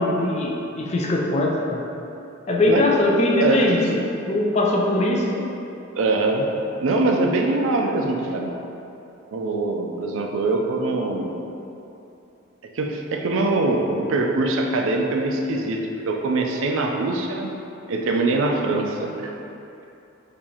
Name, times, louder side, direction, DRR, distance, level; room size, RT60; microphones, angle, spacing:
voice 1, 0.0-1.8 2.5-4.0 4.3-5.5, left 1 dB, 35° left, -1 dB, 0.4 m, -21 dB
voice 2, 3.4-3.9 6.0-6.5 6.8-8.5 9.3-11.3 12.7-17.5 17.9-19.3, right 2 dB, 80° right, 2 dB, 0.4 m, -23 dB
4.5 x 2.6 x 2.8 m, 2.8 s
head